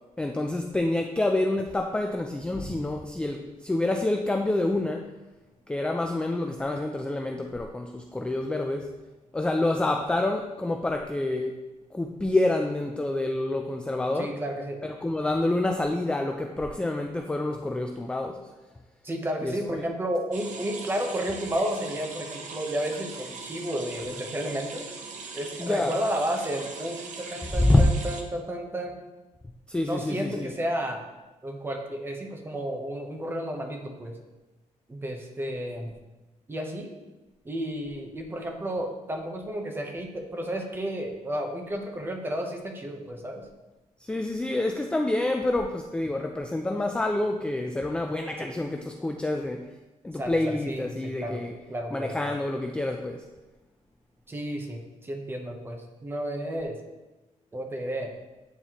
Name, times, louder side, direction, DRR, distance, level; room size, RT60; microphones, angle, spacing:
voice 1, 0.2-5.1 5.7-8.9 9.3-11.6 11.9-14.3 14.8-18.4 19.4-19.9 25.6-26.0 27.5-27.9 29.7-30.5 44.0-49.7 50.0-51.5 51.9-53.2, left 2 dB, 10° left, 3 dB, 0.3 m, -27 dB
voice 2, 14.2-14.8 19.0-24.9 25.3-29.0 29.8-31.0 31.4-34.2 34.9-35.9 36.5-36.9 37.4-43.4 48.4-48.5 50.1-51.4 51.7-52.4 54.3-56.8 57.5-58.1, right 1 dB, 15° right, 3 dB, 0.8 m, -32 dB
sound 1, 20.3-28.2, right 4 dB, 70° right, 0.8 m, -40 dB
9.1 x 4.1 x 2.9 m, 1.1 s
cardioid pair, 145°, 13 cm